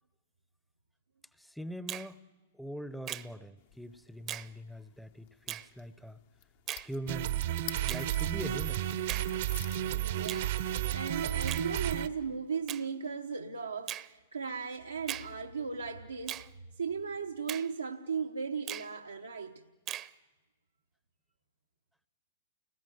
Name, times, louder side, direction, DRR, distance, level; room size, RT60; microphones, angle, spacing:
voice 1, 1.3-2.2 2.5-6.2 6.8-7.4 7.8-8.8, equal, ahead, 0.7 m, -42 dB
Finger snapping, 1.9-2.1 3.1-3.3 4.3-4.5 5.5-5.7 6.7-6.9 7.9-8.1 9.1-9.3 10.3-10.5 11.5-11.7 12.7-12.9 13.9-14.1 15.1-15.3 16.3-16.5 17.5-17.7 18.7-18.9 19.9-20.1, right 12 dB, 30° right, 0.8 m, -39 dB
sound 1, 3.6-10.8, left 12 dB, 55° left, 1.0 m, -51 dB
sound 2, 7.1-12.1, right 12 dB, 60° right, 0.9 m, -32 dB
voice 2, 9.9-16.5 16.7-19.6, right 5 dB, 90° right, 1.1 m, -37 dB
29.5 x 20.0 x 9.2 m
hypercardioid pair, 110°, 0 cm